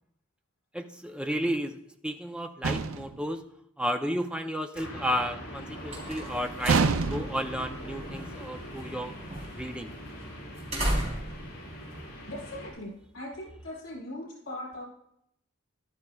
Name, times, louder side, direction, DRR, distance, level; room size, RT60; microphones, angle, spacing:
voice 1, 0.7-3.4 3.8-9.1 9.6-9.9, equal, 5° right, 6 dB, 0.5 m, -32 dB
sound 1, 2.6-3.2 6.7-7.5, right 4 dB, 80° right, 0.5 m, -26 dB
sound 2, 4.7-12.7, equal, 50° left, 4.3 m, -42 dB
sound 3, 5.4-12.9, right 1 dB, 30° right, 3.6 m, -37 dB
voice 2, 12.3-14.8, left 1 dB, 70° left, -3 dB, 5.0 m, -40 dB
13.5 x 12.0 x 2.3 m, 0.74 s
head